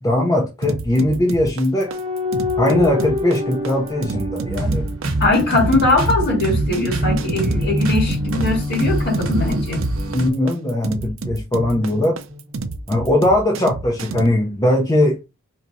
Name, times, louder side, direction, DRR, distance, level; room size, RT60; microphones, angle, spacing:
voice 1, 0.0-1.9 2.6-4.8 10.1-12.2 12.9-15.2, left 1 dB, 15° left, 0.6 m, -19 dB
sound 1, 0.6-14.3, right 3 dB, 65° right, 0.5 m, -30 dB
sound 2, 1.9-5.6 7.0-10.7 11.5-12.8, left 3 dB, 25° right, 1.2 m, -28 dB
sound 3, 4.4-10.3, right 1 dB, 85° right, 1.0 m, -24 dB
voice 2, 5.2-9.8, left 2 dB, 50° left, 2.0 m, -20 dB
4.5 x 2.8 x 2.7 m
head